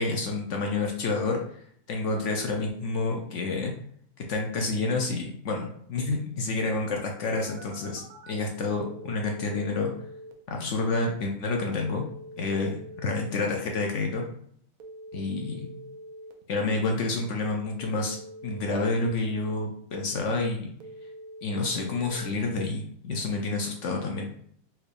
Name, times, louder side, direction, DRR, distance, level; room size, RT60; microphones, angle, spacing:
voice 1, 0.0-1.6 1.9-3.7 4.3-9.9 10.5-12.0 12.4-14.2 15.1-15.7 16.5-18.2 18.4-20.7 21.4-24.3, left 3 dB, 65° left, 1 dB, 0.8 m, -29 dB
Telephone, 7.3-8.3 8.8-10.3 11.8-13.3 14.8-16.3 17.8-19.3 20.8-22.3, right 1 dB, 70° right, 1.0 m, -44 dB
4.3 x 3.3 x 2.4 m, 0.64 s
omnidirectional pair, 1.6 m